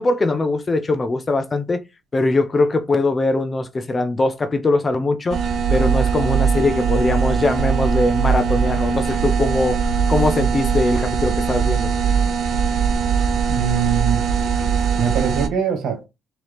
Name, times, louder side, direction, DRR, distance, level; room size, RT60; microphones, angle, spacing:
voice 1, 0.0-1.8 2.1-5.4 5.7-11.9, left 2 dB, 20° left, 0.4 m, -21 dB
sound 1, 5.3-15.5, right 6 dB, 50° right, 0.5 m, -20 dB
voice 2, 13.5-14.3 14.9-16.1, right 7 dB, 65° right, 1.4 m, -23 dB
3.6 x 2.9 x 3.3 m
cardioid pair, 160°, 0 cm